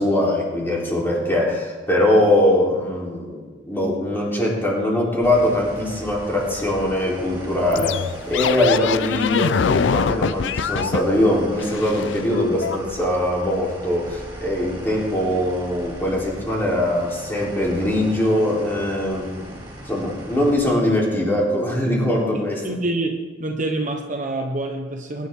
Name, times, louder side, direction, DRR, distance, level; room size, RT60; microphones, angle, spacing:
voice 1, 0.0-19.5 19.8-22.6, left 1 dB, 10° left, -4 dB, 3.7 m, -22 dB
sound 1, 5.2-20.6, right 1 dB, 25° right, 4.9 m, -39 dB
sound 2, 7.7-11.1 11.6-12.8, left 6 dB, 65° left, 0.4 m, -23 dB
voice 2, 22.6-25.3, right 2 dB, 40° right, 2 dB, 1.2 m, -26 dB
22.0 x 11.0 x 3.8 m, 1.3 s
head